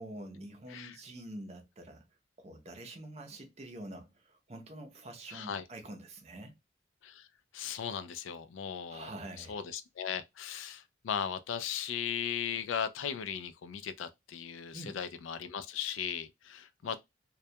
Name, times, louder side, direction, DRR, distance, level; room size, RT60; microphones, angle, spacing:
voice 1, 0.0-2.1 2.4-6.6 8.9-9.6 14.7-15.0 16.8-17.0, right 1 dB, 35° right, 0.5 m, -46 dB
voice 2, 5.3-5.6 7.0-7.3 7.5-9.1 9.4-17.0, left 8 dB, 85° left, 0.3 m, -37 dB
2.2 x 2.1 x 2.6 m
head